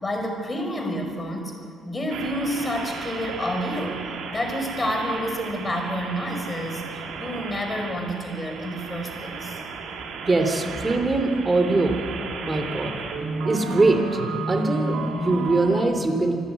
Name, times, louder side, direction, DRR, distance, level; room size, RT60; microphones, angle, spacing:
voice 1, 0.0-1.6 1.9-9.6, equal, 25° left, 3 dB, 5.2 m, -29 dB
sound 1, 2.1-15.8, right 3 dB, 80° right, 3.0 m, -33 dB
voice 2, 10.2-12.0 12.4-13.0 13.4-14.2 14.5-16.3, right 2 dB, 25° right, 5 dB, 3.0 m, -22 dB
26.0 x 11.0 x 9.4 m, 2.6 s
cardioid pair, 90°, 0 cm